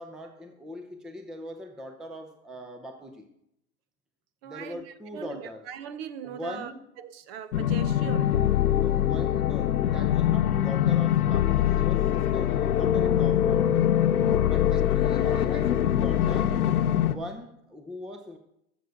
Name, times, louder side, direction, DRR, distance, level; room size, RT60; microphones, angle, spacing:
voice 1, 0.0-3.3 4.4-5.7 6.2-6.9 8.7-13.8 14.4-16.6 17.0-18.4, left 1 dB, ahead, 0.5 m, -41 dB
voice 2, 4.4-4.8 5.1-6.7 7.0-8.4 15.1-15.8, right 9 dB, 45° right, 0.8 m, -40 dB
sound 1, 7.5-17.1, left 11 dB, 80° left, 0.9 m, -23 dB
12.5 x 7.0 x 6.4 m
hypercardioid pair, 125°, 43 cm